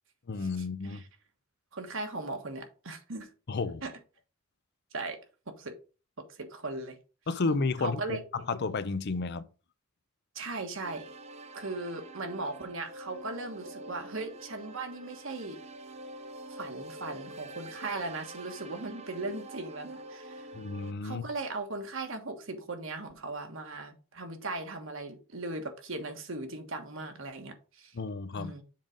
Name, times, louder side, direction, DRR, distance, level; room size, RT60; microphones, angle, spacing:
voice 1, 0.3-1.0 3.5-3.9 7.3-9.5 20.5-21.2 27.9-28.5, left 4 dB, 55° left, 0.5 m, -32 dB
voice 2, 1.7-3.3 3.8-3.9 4.9-5.2 5.6-5.8 6.3-7.0 7.8-8.2 10.3-11.1 11.5-15.6 16.5-20.5 21.0-27.9 28.4-28.6, right 2 dB, 65° right, 1.4 m, -38 dB
sound 1, 10.8-20.9, right 1 dB, 30° right, 0.5 m, -46 dB
7.3 x 3.7 x 5.1 m
head